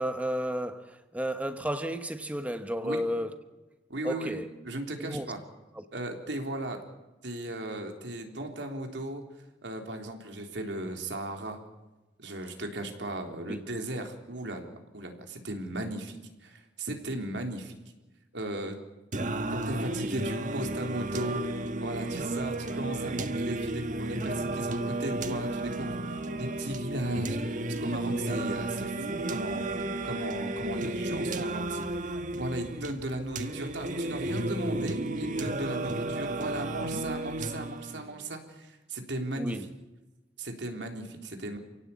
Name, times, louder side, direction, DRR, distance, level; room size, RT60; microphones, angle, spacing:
voice 1, 0.0-3.3 4.0-4.5 5.0-5.2 5.7-5.8 13.5-13.6 19.2-19.5 28.3-28.4 34.7-34.8 39.4-39.7, equal, 10° right, 1.2 m, -33 dB
voice 2, 3.9-5.4 5.9-6.8 7.2-9.2 9.6-11.6 12.2-16.2 16.4-17.7 18.3-18.8 19.5-27.4 27.8-39.7 40.4-41.6, right 1 dB, 80° right, 3.7 m, -36 dB
Singing, 19.1-38.1, right 2 dB, 45° right, 1.4 m, -33 dB
28.0 x 17.0 x 8.6 m
head